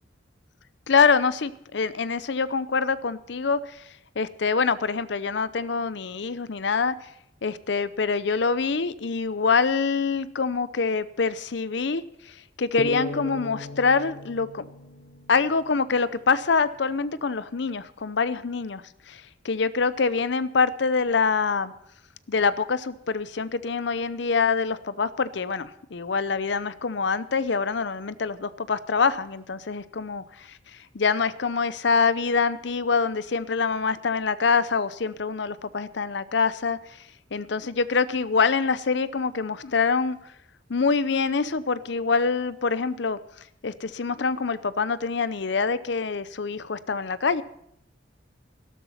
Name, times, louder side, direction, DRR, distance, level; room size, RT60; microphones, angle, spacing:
voice 1, 0.9-3.6 4.2-6.9 7.4-12.0 12.6-14.6 15.3-21.7 22.3-30.2 30.9-36.8 37.3-40.2 40.7-43.2 43.6-47.4, left 5 dB, 65° left, 16 dB, 0.6 m, -25 dB
sound 1, 12.8-16.2, left 1 dB, 45° left, 1.0 m, -37 dB
12.5 x 12.5 x 5.7 m, 0.76 s
head